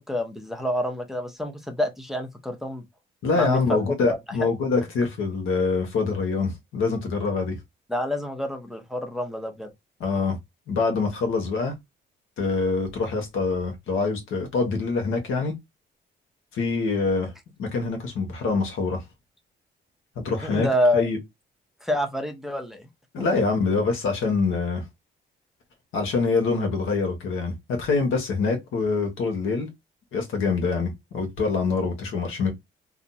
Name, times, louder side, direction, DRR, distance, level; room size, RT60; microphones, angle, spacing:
voice 1, 0.1-2.8 3.3-3.8 4.0-4.2 7.9-9.7 20.4-21.1 21.8-22.9, left 1 dB, ahead, 0.7 m, -27 dB
voice 2, 3.2-7.6 10.0-10.4 10.7-11.7 12.4-15.5 16.5-17.3 17.6-19.0 20.2-20.7 20.9-21.2 23.1-24.8 25.9-29.7 30.1-32.5, left 4 dB, 85° left, 1.1 m, -25 dB
2.7 x 2.2 x 4.0 m
cardioid pair, 90°, 20 cm